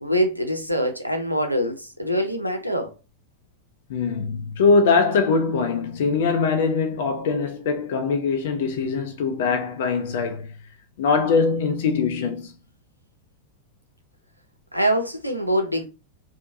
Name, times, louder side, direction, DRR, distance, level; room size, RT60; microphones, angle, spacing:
voice 1, 0.0-2.9 14.7-15.9, equal, 90° right, 0.5 m, -24 dB
voice 2, 3.9-10.5 11.0-12.5, left 4 dB, 55° left, 0.5 m, -22 dB
2.7 x 2.1 x 2.6 m
figure-of-eight pair, 90°, 0 cm